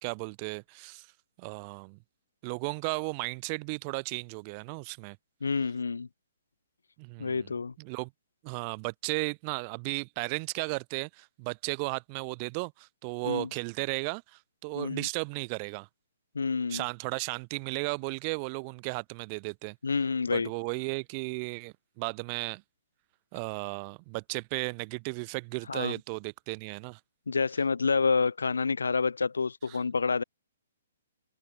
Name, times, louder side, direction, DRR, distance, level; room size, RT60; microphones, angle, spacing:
voice 1, 0.0-1.1 1.4-2.0 2.4-5.2 7.0-7.5 7.8-8.1 8.4-15.9 16.7-19.8 20.3-22.6 23.3-27.0 29.7-29.8, right 34 dB, 30° right, 0.5 m, -35 dB
voice 2, 5.4-6.1 7.2-7.7 13.2-13.5 14.7-15.1 16.3-16.9 19.8-20.5 25.7-25.9 27.3-30.2, left 4 dB, 70° left, 0.5 m, -28 dB
open air
figure-of-eight pair, 125°, 0 cm